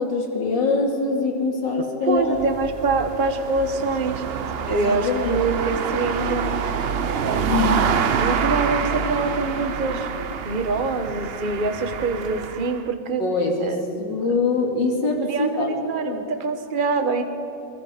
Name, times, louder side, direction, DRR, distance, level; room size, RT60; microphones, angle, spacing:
voice 1, 0.0-2.4 4.7-5.4 7.5-7.8 13.2-15.7 16.0-16.3, left 3 dB, 70° left, 1 dB, 3.1 m, -23 dB
voice 2, 2.1-4.2 4.7-6.6 7.2-7.8 8.2-10.1 10.4-13.2 13.6-13.8 14.2-14.3 15.2-17.2, right 3 dB, 30° right, 6 dB, 1.2 m, -25 dB
sound 1, 2.2-12.8, right 6 dB, 80° right, 0.5 m, -26 dB
23.0 x 22.5 x 5.2 m, 2.7 s
omnidirectional pair, 2.0 m